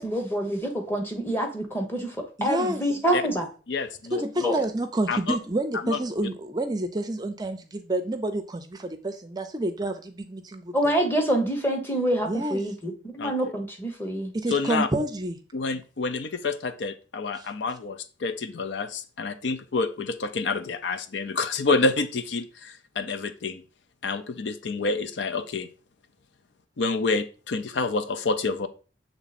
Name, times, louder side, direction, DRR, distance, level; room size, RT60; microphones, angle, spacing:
voice 1, 0.0-2.2 2.4-3.5 4.4-4.6 10.7-14.3, right 1 dB, 10° left, 3 dB, 1.0 m, -26 dB
voice 2, 2.4-2.8 4.1-10.7 12.3-12.6 14.3-15.4 17.4-17.5, right 1 dB, 20° right, 8 dB, 0.5 m, -29 dB
voice 3, 3.7-4.2 5.1-5.4 5.8-6.0 13.2-13.5 14.5-14.9 15.5-23.6 24.0-25.7 26.8-28.7, left 3 dB, 75° left, 10 dB, 0.5 m, -28 dB
7.1 x 3.3 x 4.1 m, 0.36 s
head